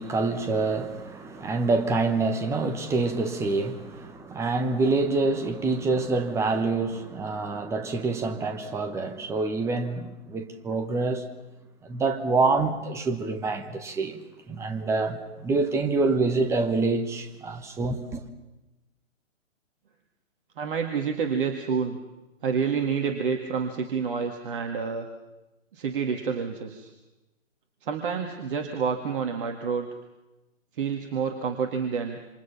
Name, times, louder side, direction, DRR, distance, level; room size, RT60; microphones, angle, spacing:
voice 1, 0.0-11.2 11.8-14.2 14.5-18.2, right 3 dB, 5° right, 1.1 m, -26 dB
voice 2, 20.6-22.0 22.4-25.1 25.7-26.9 27.8-29.9 30.8-32.2, right 6 dB, 40° right, 2.1 m, -28 dB
27.5 x 26.0 x 5.8 m
figure-of-eight pair, 130°, 39 cm